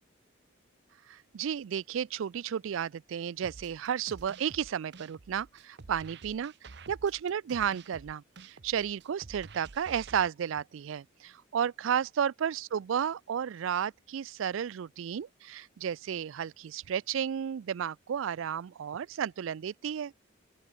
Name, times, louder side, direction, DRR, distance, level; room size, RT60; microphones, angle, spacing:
voice 1, 1.1-6.5 6.9-20.1, right 8 dB, 75° right, 0.3 m, -33 dB
sound 1, 3.4-10.3, right 4 dB, 55° right, 0.8 m, -50 dB
open air
head